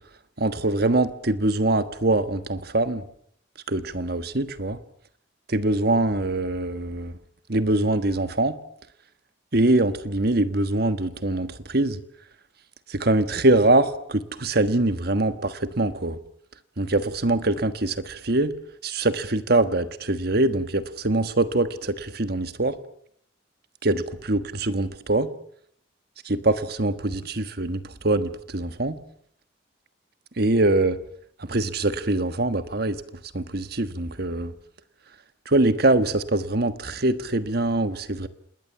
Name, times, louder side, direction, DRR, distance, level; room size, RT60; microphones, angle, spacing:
voice 1, 0.4-3.0 3.7-4.8 5.5-7.2 7.5-8.5 9.5-12.0 12.9-16.2 16.8-18.5 18.8-22.7 23.8-25.3 26.2-29.0 30.4-31.0 31.4-33.0 33.3-34.5 35.5-38.3, right 2 dB, 55° right, 11 dB, 1.4 m, -23 dB
27.0 x 20.5 x 7.2 m, 0.68 s
head